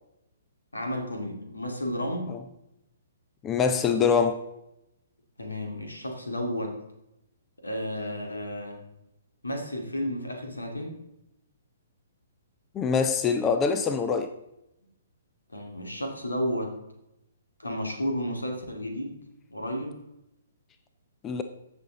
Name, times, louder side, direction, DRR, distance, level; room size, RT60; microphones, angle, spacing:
voice 1, 0.7-2.3 5.4-6.8 7.6-8.8 9.4-10.9 15.5-16.8 17.6-19.2 19.5-20.0, equal, 80° left, 2.4 m, -32 dB
voice 2, 3.4-4.4 12.8-14.3 21.2-21.4, left 6 dB, 20° left, 0.6 m, -24 dB
15.0 x 6.2 x 4.0 m
figure-of-eight pair, 125°, 0 cm